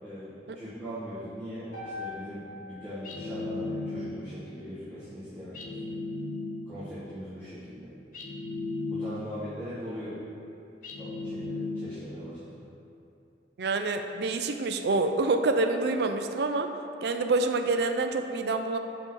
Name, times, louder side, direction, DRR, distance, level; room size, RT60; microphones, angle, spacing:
voice 1, 0.0-5.7 6.7-7.9 8.9-10.2 11.0-12.6, equal, 15° left, -16 dB, 1.6 m, -40 dB
sound 1, 1.7-5.9, left 3 dB, 80° left, 1.6 m, -46 dB
sound 2, 3.0-4.4 5.5-6.9 8.1-9.5 10.8-12.2, left 2 dB, 45° left, 0.6 m, -35 dB
voice 2, 13.6-16.7 17.0-18.8, right 3 dB, 60° right, 6 dB, 0.4 m, -27 dB
5.6 x 5.3 x 4.8 m, 2.7 s
head